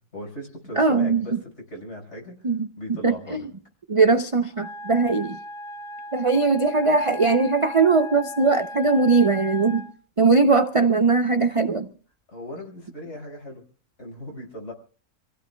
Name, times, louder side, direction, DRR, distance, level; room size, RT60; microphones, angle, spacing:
voice 1, 0.0-2.5 2.8-3.5 12.3-13.6 14.0-14.7, left 1 dB, 45° left, 5.5 m, -38 dB
voice 2, 0.8-1.2 2.4-2.7 3.0-3.4 3.9-5.4 6.1-9.9 10.2-11.9, right 4 dB, 50° right, 0.3 m, -20 dB
Wind instrument woodwind instrument, 4.6-9.9, left 2 dB, 20° left, 1.1 m, -37 dB
28.5 x 16.0 x 2.2 m
omnidirectional pair, 1.6 m